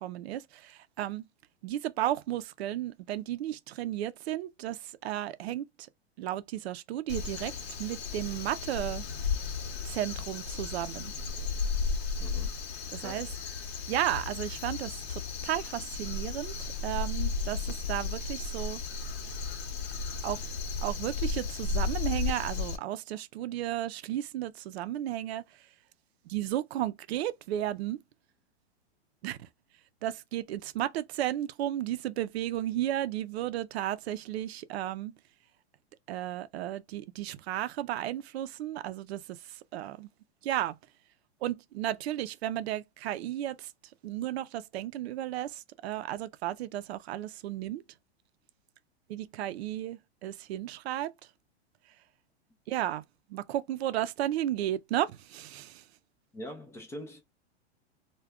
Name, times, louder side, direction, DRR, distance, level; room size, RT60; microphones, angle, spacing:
voice 1, 0.0-1.2 1.6-5.7 6.2-7.5 7.8-9.0 9.8-11.1 12.9-13.3 13.9-16.5 16.8-17.6 17.9-18.8 20.2-20.4 20.8-25.4 26.3-28.0 29.2-29.5 30.0-35.1 36.1-40.1 40.4-40.8 41.4-43.7 44.0-47.8 49.1-51.1 52.7-53.0 53.3-55.8, right 13 dB, 70° right, 0.5 m, -34 dB
Crow, 7.1-22.8, left 4 dB, 70° left, 0.8 m, -34 dB
voice 2, 12.2-12.6 13.0-13.3 56.3-57.2, equal, 10° left, 0.3 m, -43 dB
2.3 x 2.2 x 3.5 m
hypercardioid pair, 125°, 33 cm